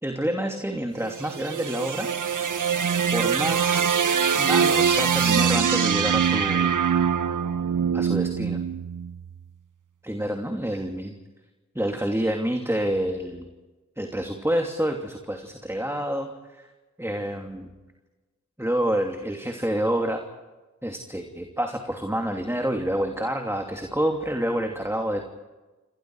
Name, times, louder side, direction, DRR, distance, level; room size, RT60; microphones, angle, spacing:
voice 1, 0.0-2.1 3.1-6.7 7.9-8.6 10.0-11.1 11.7-13.5 14.0-16.7 17.0-17.8 18.6-20.2 20.8-25.2, right 1 dB, 10° right, 3 dB, 2.8 m, -28 dB
sound 1, 1.0-9.3, right 7 dB, 90° right, 0.7 m, -23 dB
29.0 x 26.0 x 4.8 m, 1.2 s
wide cardioid pair, 40°, 30 cm